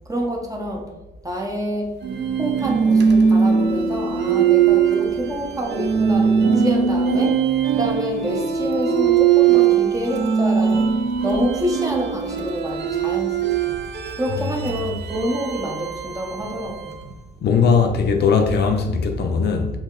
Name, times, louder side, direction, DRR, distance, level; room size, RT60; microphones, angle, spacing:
voice 1, 0.1-0.8 1.2-1.9 2.4-7.4 7.7-10.9 11.2-13.4 13.6-13.7 14.2-17.0, equal, 15° right, 0.6 m, -27 dB
sound 1, 2.0-17.1, right 7 dB, 65° right, 0.4 m, -20 dB
voice 2, 17.4-19.7, left 5 dB, 60° left, 0.4 m, -19 dB
2.8 x 2.0 x 3.6 m
cardioid pair, 110°, 20 cm